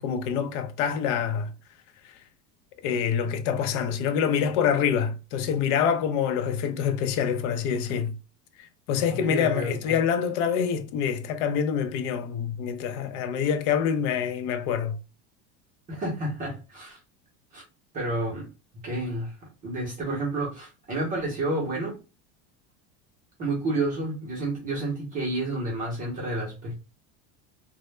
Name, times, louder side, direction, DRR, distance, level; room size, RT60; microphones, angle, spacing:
voice 1, 0.0-1.5 2.0-2.2 2.8-8.1 8.6-15.0, left 7 dB, 65° left, 0.5 m, -26 dB
voice 2, 9.1-10.0 15.9-17.0 17.5-17.6 17.9-18.5 18.8-19.4 19.6-22.0 23.4-26.7, right 2 dB, 20° right, 0.6 m, -30 dB
2.1 x 2.0 x 3.1 m
cardioid pair, 170°, 38 cm